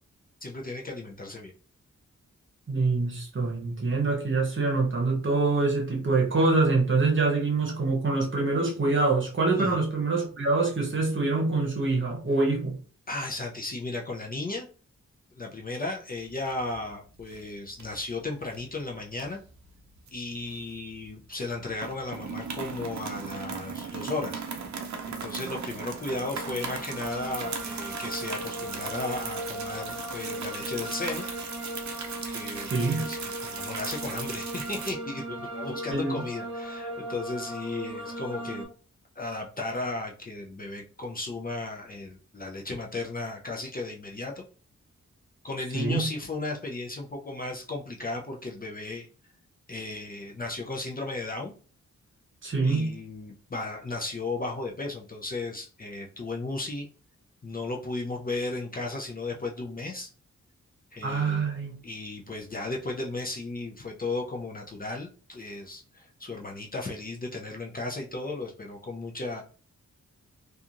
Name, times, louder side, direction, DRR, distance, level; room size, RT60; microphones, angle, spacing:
voice 1, 0.4-1.5 9.6-9.8 13.1-14.7 15.4-19.4 20.1-24.4 25.1-31.2 32.3-38.7 39.2-44.4 45.4-49.1 49.7-51.5 52.6-56.9 57.4-60.1 60.9-61.5 61.8-69.4, left 2 dB, 30° left, 0.5 m, -35 dB
voice 2, 2.7-12.8 32.7-33.1 35.9-36.2 45.7-46.1 52.4-52.9 61.0-61.7, right 3 dB, 40° right, 0.9 m, -25 dB
sound 1, 16.2-16.9 17.2-17.4 17.8-18.6 19.1-21.1 21.3-21.5 21.8-34.9, right 5 dB, 70° right, 0.6 m, -38 dB
sound 2, 25.8-38.6, right 1 dB, 15° right, 1.4 m, -38 dB
2.8 x 2.4 x 2.5 m
wide cardioid pair, 75°, 30 cm